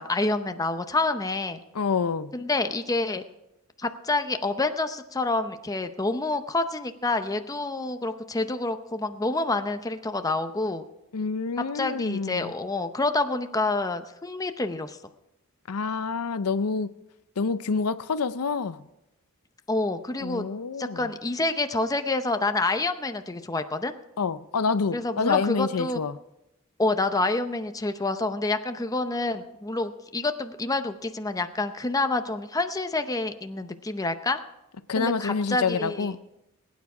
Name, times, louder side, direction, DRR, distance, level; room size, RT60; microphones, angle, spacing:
voice 1, 0.0-1.6 2.3-3.2 3.8-10.8 11.7-15.0 19.7-20.5 20.8-23.9 24.9-26.0 26.8-34.4 35.0-36.1, left 2 dB, 15° left, 8 dB, 0.7 m, -28 dB
voice 2, 1.7-2.3 11.1-12.5 15.7-16.9 17.4-18.9 20.2-21.1 24.2-26.2 34.9-36.2, left 5 dB, 75° left, 13 dB, 0.6 m, -27 dB
20.5 x 9.5 x 4.9 m, 0.88 s
head